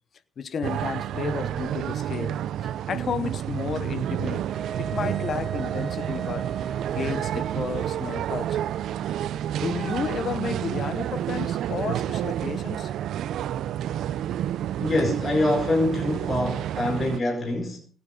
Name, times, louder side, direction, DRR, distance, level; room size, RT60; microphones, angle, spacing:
voice 1, 0.4-4.5 4.8-6.5 6.9-8.6 9.6-12.9, left 6 dB, 55° left, 1.2 m, -32 dB
sound 1, 0.6-17.2, right 11 dB, 75° right, 0.6 m, -29 dB
Wind instrument woodwind instrument, 4.5-8.1, right 6 dB, 50° right, 1.0 m, -37 dB
voice 2, 14.8-17.8, left 2 dB, 35° left, 5.2 m, -25 dB
25.0 x 9.7 x 5.4 m
cardioid pair, 90°, 0 cm